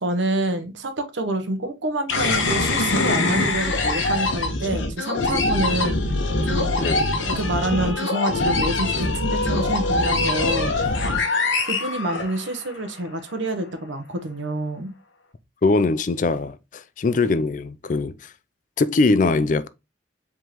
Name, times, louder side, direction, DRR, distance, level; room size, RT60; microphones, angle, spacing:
voice 1, 0.0-6.0 6.5-11.0 11.6-14.9, right 1 dB, 75° right, 0.9 m, -27 dB
sound 1, 2.1-12.7, left 2 dB, 85° left, 1.1 m, -23 dB
voice 2, 6.8-7.1 15.6-18.1 18.8-19.7, left 3 dB, 40° left, 0.4 m, -21 dB
4.9 x 3.6 x 3.0 m
head